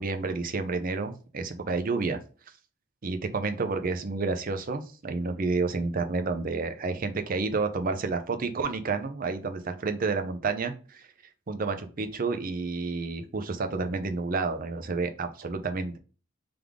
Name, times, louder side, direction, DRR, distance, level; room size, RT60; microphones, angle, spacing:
voice 1, 0.0-2.2 3.0-11.1 11.5-16.0, right 4 dB, 40° right, 7 dB, 0.5 m, -30 dB
3.5 x 3.4 x 3.5 m, 0.37 s
head